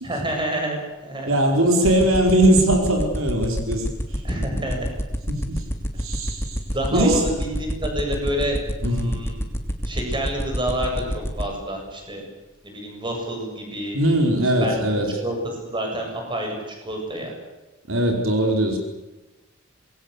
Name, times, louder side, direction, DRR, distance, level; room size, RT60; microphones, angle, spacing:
voice 1, 0.0-1.4 1.8-2.0 4.2-4.9 6.7-9.4 9.8-12.2 12.6-14.0 14.4-14.7 15.2-17.3, right 1 dB, 25° right, 2 dB, 7.9 m, -28 dB
voice 2, 1.3-3.9 5.3-5.6 6.0-6.6 6.9-7.2 8.8-9.2 13.9-15.1 17.9-18.8, right 1 dB, 75° right, 3 dB, 4.9 m, -20 dB
sound 1, 1.8-11.4, equal, 10° left, 3.0 m, -25 dB
26.0 x 21.5 x 8.3 m, 1.1 s
head